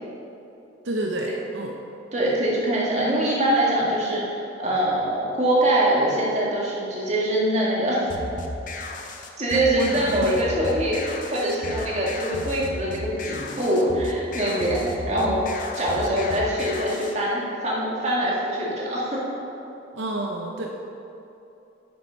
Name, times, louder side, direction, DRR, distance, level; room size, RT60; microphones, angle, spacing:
voice 1, 0.8-1.7 9.5-10.4 19.9-20.7, right 1 dB, 75° right, 1 dB, 0.7 m, -28 dB
voice 2, 2.1-4.2 4.6-8.2 9.4-15.4 15.7-19.2, right 1 dB, 35° right, -5 dB, 2.0 m, -23 dB
sound 1, 8.1-17.1, left 2 dB, 45° left, 0.7 m, -35 dB
9.4 x 6.4 x 5.7 m, 2.9 s
head